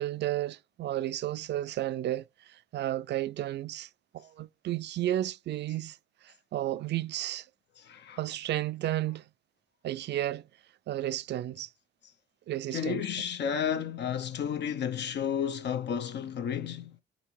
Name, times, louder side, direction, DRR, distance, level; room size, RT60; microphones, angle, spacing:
voice 1, 0.0-3.9 4.1-6.0 6.2-7.5 8.2-9.2 9.8-10.5 10.9-11.7 12.5-13.0, right 13 dB, 60° right, 0.4 m, -32 dB
voice 2, 7.8-8.2 12.7-16.9, left 8 dB, 60° left, 0.7 m, -32 dB
5.5 x 4.1 x 4.4 m
cardioid pair, 90°, 20 cm